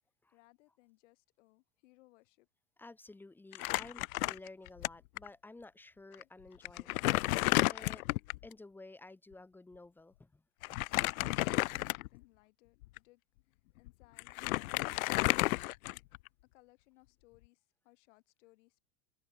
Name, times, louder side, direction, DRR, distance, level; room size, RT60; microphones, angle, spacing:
voice 1, 0.3-2.5 10.9-13.2 13.8-14.9 16.5-18.8, left 21 dB, 55° left, 4.5 m, -65 dB
voice 2, 2.8-8.1 8.4-10.4 10.7-10.8, left 2 dB, 5° left, 2.1 m, -53 dB
Crumpling crinkling, 3.5-4.9 5.2-5.3 6.1-6.2 6.6-8.5 10.6-12.2 12.8-13.0 13.9-14.0 14.2-16.3, left 20 dB, 70° left, 0.6 m, -32 dB
open air
supercardioid pair, 180°, 45 cm